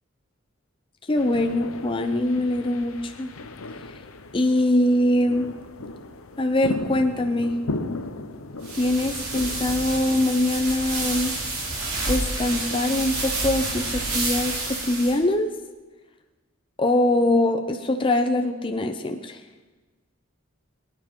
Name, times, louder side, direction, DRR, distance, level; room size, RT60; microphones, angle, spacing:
voice 1, 1.1-3.3 4.3-5.5 6.4-7.6 8.7-11.3 12.1-14.5 14.9-15.5 16.8-19.4, left 1 dB, 25° left, 4 dB, 0.6 m, -23 dB
sound 1, 1.2-13.0, left 2 dB, 75° left, 0.9 m, -37 dB
sound 2, 8.6-15.2, right 2 dB, 80° right, 3.6 m, -29 dB
23.0 x 9.7 x 3.7 m, 1.3 s
head